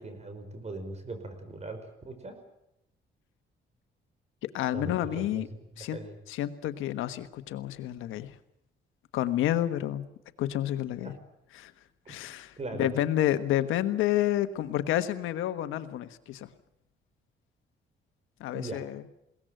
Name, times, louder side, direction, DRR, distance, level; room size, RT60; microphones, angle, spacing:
voice 1, 0.0-2.4 4.7-5.6 5.9-6.2 11.0-11.1 12.1-12.2 12.6-12.9 18.5-18.9, right 2 dB, 35° right, 8 dB, 5.4 m, -40 dB
voice 2, 4.4-5.5 5.8-6.0 6.3-8.4 9.1-10.1 10.4-11.1 11.5-11.7 12.1-16.5 18.4-19.0, left 12 dB, 90° left, 11 dB, 1.4 m, -29 dB
21.5 x 18.0 x 9.2 m, 0.84 s
cardioid pair, 90°, 20 cm